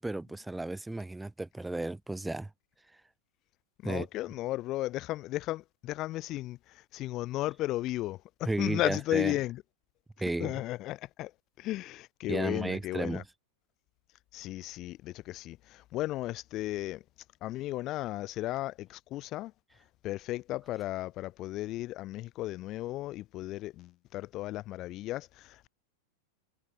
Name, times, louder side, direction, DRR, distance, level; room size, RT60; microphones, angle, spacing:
voice 1, 0.0-2.5 3.8-4.1 8.5-9.3 10.2-10.5 12.3-13.2, right 2 dB, 5° right, 1.3 m, -33 dB
voice 2, 3.8-9.6 10.4-11.3 11.6-13.2 14.3-17.0 17.4-19.5 20.0-25.7, left 16 dB, 40° left, 1.5 m, -35 dB
hypercardioid pair, 120°, 0 cm